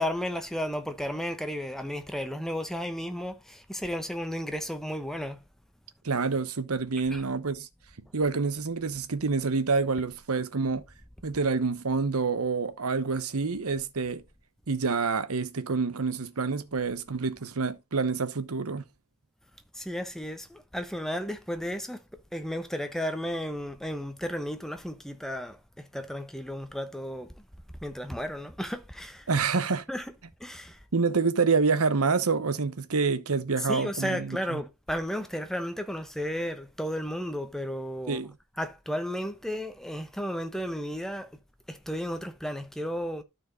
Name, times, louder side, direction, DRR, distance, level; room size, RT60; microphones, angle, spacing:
voice 1, 0.0-5.4 7.1-7.2 19.7-22.0 22.3-27.3 27.8-29.3 29.9-30.1 30.4-30.8 33.6-38.2 38.6-41.3 41.7-43.2, equal, ahead, 1.0 m, -33 dB
voice 2, 6.0-7.7 8.1-10.8 11.2-14.2 14.7-18.8 29.3-29.8 30.9-34.6 38.1-38.3, right 4 dB, 75° right, 0.9 m, -27 dB
12.5 x 4.6 x 3.9 m
head